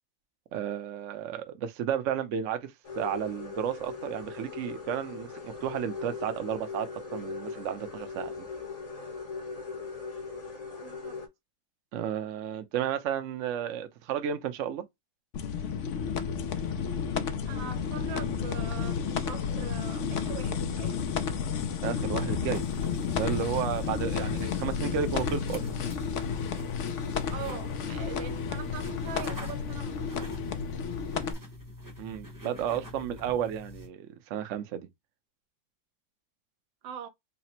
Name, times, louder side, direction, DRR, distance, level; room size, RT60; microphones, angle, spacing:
voice 1, 0.5-8.5 11.9-14.9 21.8-22.7 23.1-25.6 32.0-34.9, right 9 dB, 60° right, 0.8 m, -33 dB
sound 1, 2.8-11.3, left 4 dB, 30° left, 0.7 m, -40 dB
voice 2, 10.8-11.2 17.4-21.0 24.3-24.5 27.3-30.1 36.8-37.1, right 7 dB, 85° right, 1.5 m, -42 dB
sound 2, 15.3-31.3, left 6 dB, 80° left, 0.6 m, -32 dB
sound 3, 22.5-33.9, left 1 dB, 15° right, 0.6 m, -45 dB
4.2 x 2.0 x 4.1 m
omnidirectional pair, 2.0 m